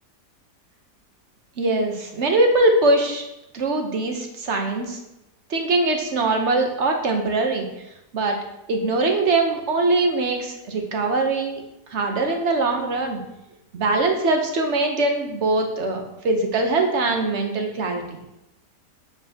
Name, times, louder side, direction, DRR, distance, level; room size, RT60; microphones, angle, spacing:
voice 1, 1.6-3.2 3.5-5.0 5.5-7.7 8.1-8.4 8.7-11.6 11.9-13.2 13.7-18.2, right 2 dB, 50° right, 3 dB, 1.0 m, -22 dB
7.4 x 4.8 x 2.8 m, 0.91 s
omnidirectional pair, 1.8 m